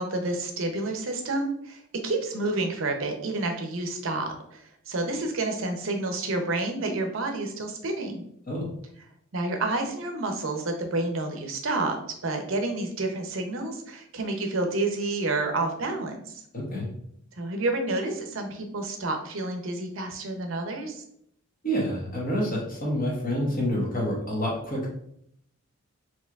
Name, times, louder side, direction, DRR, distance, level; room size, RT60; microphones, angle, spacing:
voice 1, 0.0-8.2 9.3-12.0 12.2-16.4 17.3-21.0, right 2 dB, 65° right, 4 dB, 0.6 m, -29 dB
voice 2, 16.5-16.9 21.6-24.9, equal, 40° left, -3 dB, 1.2 m, -28 dB
4.4 x 2.9 x 2.3 m, 0.71 s
head